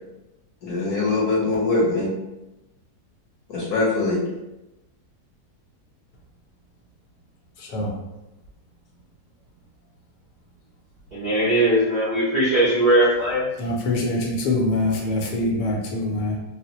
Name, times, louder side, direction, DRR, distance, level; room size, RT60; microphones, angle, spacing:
voice 1, 0.6-2.1 3.5-4.2, left 3 dB, 65° left, -5 dB, 1.3 m, -22 dB
voice 2, 7.6-7.9 13.6-16.4, left 2 dB, 85° left, -1 dB, 1.3 m, -24 dB
voice 3, 11.1-13.5, right 1 dB, 80° right, -7 dB, 0.4 m, -19 dB
3.8 x 2.0 x 2.9 m, 0.96 s
omnidirectional pair, 1.8 m